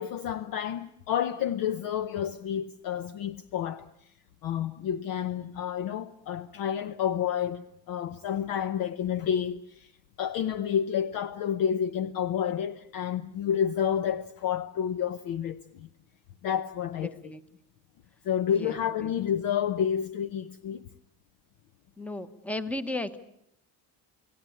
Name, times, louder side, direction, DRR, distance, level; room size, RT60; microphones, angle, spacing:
voice 1, 0.0-3.9 4.4-9.9 10.2-15.9 16.4-17.1 18.2-20.8, left 9 dB, 55° left, 0.9 m, -30 dB
voice 2, 17.0-17.4 18.6-19.1 22.0-23.2, left 2 dB, 5° left, 0.9 m, -35 dB
29.5 x 17.5 x 8.4 m
cardioid pair, 155°, 40 cm